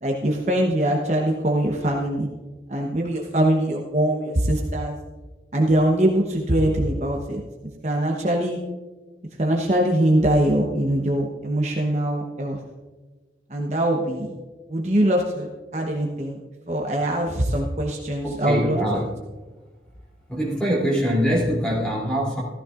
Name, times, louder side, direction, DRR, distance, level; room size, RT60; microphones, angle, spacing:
voice 1, 0.0-2.3 2.7-5.0 5.5-7.4 7.8-8.6 9.4-12.6 13.5-14.3 14.7-16.4 16.7-18.8, right 1 dB, 40° right, 0 dB, 1.0 m, -22 dB
voice 2, 18.2-19.2 20.3-22.4, equal, 5° left, -5 dB, 3.0 m, -23 dB
14.5 x 13.5 x 2.5 m, 1.3 s
head